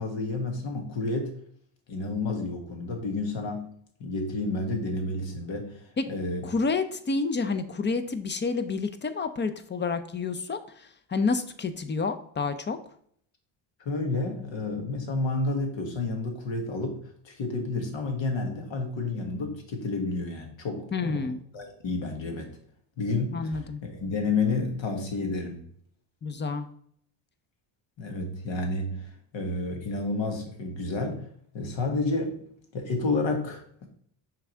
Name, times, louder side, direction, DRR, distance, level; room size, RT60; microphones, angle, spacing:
voice 1, 0.0-1.3 1.9-3.7 4.0-6.5 13.8-17.0 17.2-22.5 23.0-25.6 28.0-31.3 31.5-32.4 32.7-33.9, left 3 dB, 65° left, 4 dB, 1.6 m, -30 dB
voice 2, 6.4-12.8 20.9-21.4 23.3-23.8 26.2-26.7, left 4 dB, 25° left, 10 dB, 0.5 m, -29 dB
5.8 x 3.7 x 4.4 m, 0.64 s
cardioid pair, 105°, 48 cm